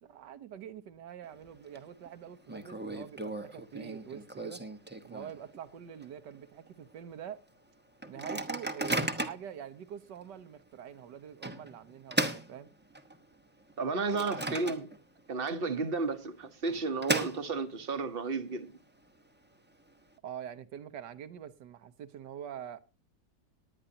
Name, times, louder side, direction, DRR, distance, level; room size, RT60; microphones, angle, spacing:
voice 1, 0.0-4.6 5.0-7.4 8.1-12.7 20.2-22.8, right 9 dB, 75° right, 1.6 m, -45 dB
Microwave oven, 1.2-1.8 2.1-2.2 2.5-5.6 6.0-6.1 6.3-6.7 7.2-7.3 8.0-9.5 10.2-10.3 11.4-13.2 13.7-15.2 15.5-15.6 16.4-17.8, right 2 dB, 10° right, 0.8 m, -36 dB
voice 2, 13.8-14.9 15.3-18.8, right 4 dB, 40° right, 1.1 m, -33 dB
19.0 x 10.0 x 2.7 m
omnidirectional pair, 1.9 m